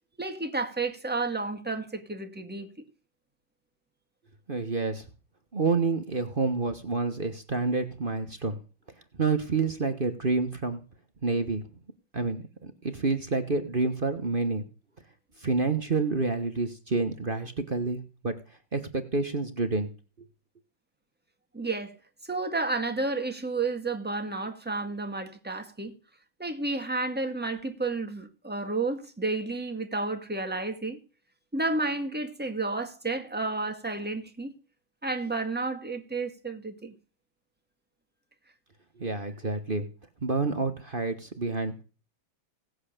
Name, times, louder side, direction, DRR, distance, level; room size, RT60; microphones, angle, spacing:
voice 1, 0.2-2.7 21.5-22.0 22.3-25.9 26.4-31.0 31.5-34.5 35.0-36.9, right 3 dB, 5° right, 1.7 m, -31 dB
voice 2, 4.5-5.1 5.5-8.6 9.1-10.8 11.2-11.6 12.1-14.7 15.4-18.3 18.7-19.9 20.2-20.3 39.0-39.9 40.2-41.7, right 3 dB, 30° right, 1.2 m, -28 dB
17.5 x 8.2 x 6.7 m
omnidirectional pair, 2.2 m